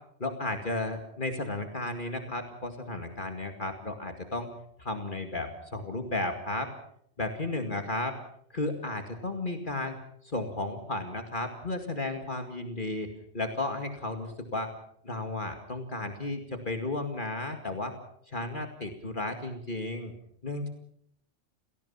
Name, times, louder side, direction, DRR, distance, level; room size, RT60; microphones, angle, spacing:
voice 1, 0.2-4.5 4.8-6.7 7.2-8.2 8.5-10.0 10.2-13.1 13.3-14.7 15.0-17.9 18.3-20.1 20.4-20.7, left 2 dB, 40° left, 5 dB, 2.4 m, -33 dB
28.5 x 18.0 x 5.7 m, 0.68 s
omnidirectional pair, 1.2 m